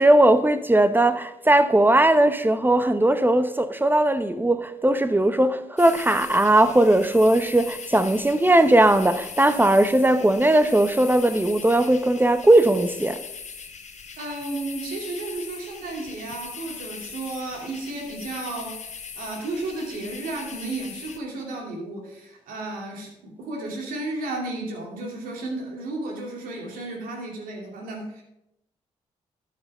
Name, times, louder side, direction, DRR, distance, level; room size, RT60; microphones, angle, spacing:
voice 1, 0.0-13.2, right 1 dB, 15° right, 1.0 m, -19 dB
sound 1, 5.8-21.2, left 6 dB, 55° left, 1.4 m, -40 dB
voice 2, 14.2-18.8 19.2-28.2, right 2 dB, 75° right, 2.7 m, -33 dB
12.0 x 5.9 x 5.5 m
hypercardioid pair, 40°, 14 cm